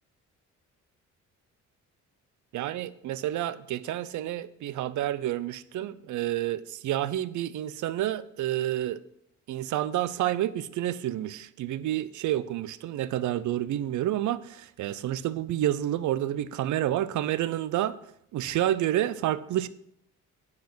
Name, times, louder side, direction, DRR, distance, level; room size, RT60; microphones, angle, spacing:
voice 1, 2.5-9.0 9.5-18.0 18.3-19.7, right 13 dB, 75° right, 0.6 m, -29 dB
9.4 x 4.9 x 6.0 m
cardioid pair, 90°, 30 cm